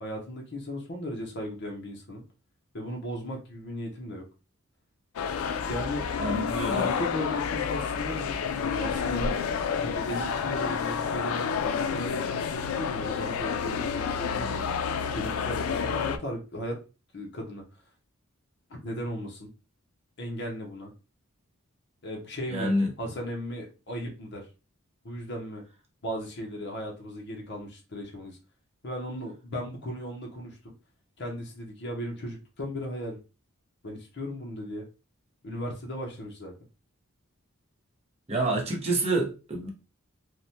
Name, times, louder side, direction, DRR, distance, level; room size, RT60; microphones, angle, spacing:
voice 1, 0.0-2.2 2.7-4.2 5.6-6.0 6.7-9.4 9.8-14.7 15.1-16.8 17.1-17.6 18.7-19.5 20.2-20.9 22.0-24.5 25.0-25.6 26.0-28.4 28.8-30.7 31.2-33.2 33.8-34.9 35.4-36.5, equal, 55° left, 0.7 m, -36 dB
sound 1, 5.2-16.2, left 6 dB, 85° left, 0.3 m, -29 dB
voice 2, 6.2-6.9 22.5-22.9 38.3-39.7, right 1 dB, 30° right, 0.7 m, -27 dB
3.2 x 2.1 x 2.7 m
head